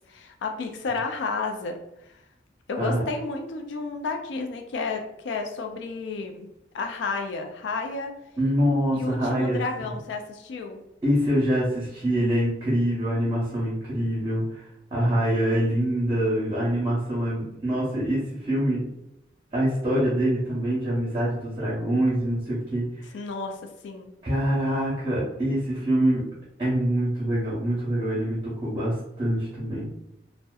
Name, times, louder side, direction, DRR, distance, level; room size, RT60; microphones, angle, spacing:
voice 1, 0.1-1.8 2.7-6.5 6.7-8.1 8.9-10.8 23.1-24.1, left 4 dB, 80° left, 5 dB, 0.4 m, -31 dB
voice 2, 8.4-9.6 11.0-14.6 14.9-18.8 19.5-23.0 24.2-26.2 26.6-29.9, right 1 dB, 30° right, -8 dB, 0.7 m, -25 dB
2.7 x 2.1 x 2.3 m, 0.85 s
head